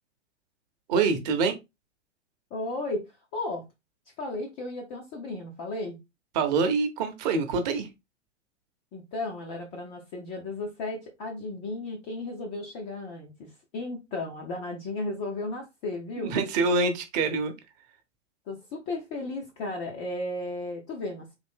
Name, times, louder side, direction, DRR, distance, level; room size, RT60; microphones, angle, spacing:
voice 1, 0.9-1.5 6.3-7.9 16.2-17.5, right 4 dB, 35° right, 0.8 m, -25 dB
voice 2, 2.5-3.6 4.2-6.0 8.9-16.3 18.5-21.3, left 2 dB, 15° left, 0.4 m, -34 dB
3.9 x 2.7 x 3.5 m
figure-of-eight pair, 100°, 36 cm